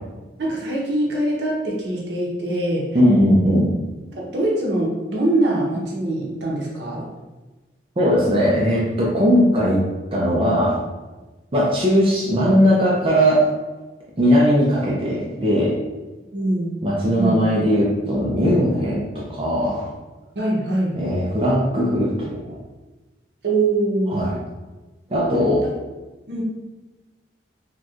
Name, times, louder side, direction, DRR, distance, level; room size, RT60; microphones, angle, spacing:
voice 1, 0.4-2.9 4.2-7.1 16.3-16.7 17.2-17.4 20.4-20.9 23.4-24.3 25.6-25.7 26.3-26.4, right 1 dB, 65° right, -3 dB, 0.7 m, -23 dB
voice 2, 2.9-3.7 8.0-9.8 10.1-10.8 11.5-13.5 14.2-15.8 16.8-19.9 21.0-22.6 24.1-24.4 25.1-25.7, equal, 30° right, -4 dB, 0.4 m, -19 dB
4.1 x 2.3 x 2.4 m, 1.2 s
head